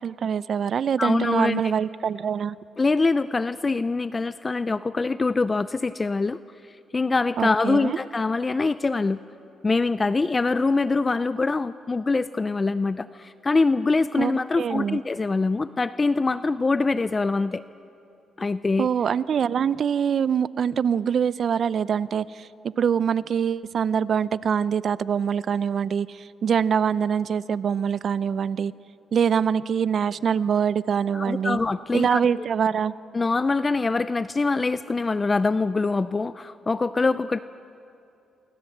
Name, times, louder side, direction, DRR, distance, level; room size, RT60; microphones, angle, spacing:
voice 1, 0.0-2.6 7.4-8.0 14.2-15.0 18.8-22.5 22.8-28.7 29.1-31.6 31.9-32.9, right 7 dB, 55° right, 18 dB, 0.6 m, -24 dB
voice 2, 1.0-1.6 2.8-6.4 6.6-9.2 9.6-17.6 18.4-18.9 31.1-32.2 33.1-37.4, left 3 dB, 25° left, 14 dB, 0.5 m, -24 dB
26.5 x 24.0 x 8.0 m, 2.7 s
cardioid pair, 90°, 0 cm